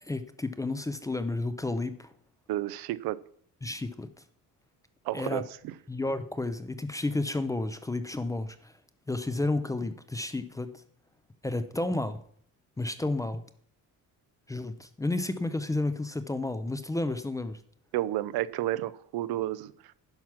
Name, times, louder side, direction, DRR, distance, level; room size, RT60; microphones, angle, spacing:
voice 1, 0.0-2.1 3.6-4.1 5.1-5.4 5.9-8.7 9.1-10.7 11.4-12.2 12.8-13.4 14.5-17.6, left 2 dB, 10° left, 11 dB, 0.3 m, -31 dB
voice 2, 2.5-3.2 5.0-5.7 17.9-19.9, right 15 dB, 90° right, 17 dB, 0.6 m, -31 dB
10.5 x 5.9 x 5.8 m, 0.64 s
cardioid pair, 160°, 36 cm